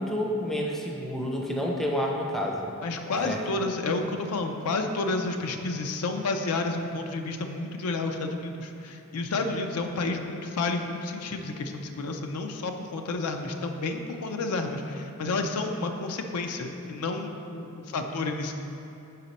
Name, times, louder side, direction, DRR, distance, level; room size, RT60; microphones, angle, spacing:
voice 1, 0.0-2.7 3.2-3.4, equal, ahead, -1 dB, 0.4 m, -29 dB
voice 2, 2.8-18.5, left 3 dB, 80° left, 5 dB, 0.4 m, -30 dB
5.0 x 4.2 x 5.2 m, 2.8 s
head